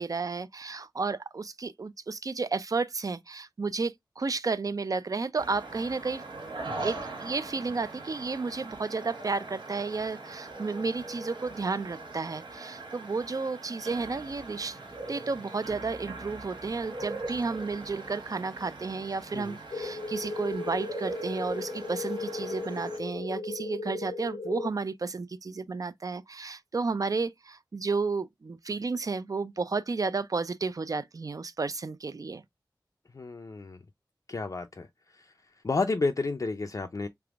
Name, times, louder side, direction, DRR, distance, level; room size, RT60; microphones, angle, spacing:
voice 1, 0.0-6.2 6.8-14.8 15.1-32.4, right 4 dB, 50° right, 0.4 m, -32 dB
sound 1, 5.4-23.0, right 2 dB, 80° right, 1.2 m, -41 dB
sound 2, 19.7-24.7, left 3 dB, 85° left, 0.8 m, -36 dB
voice 2, 33.1-33.8 34.3-34.9 35.1-35.3 35.6-37.1, left 3 dB, 45° left, 0.4 m, -31 dB
3.4 x 3.3 x 2.3 m
wide cardioid pair, 70°, 8 cm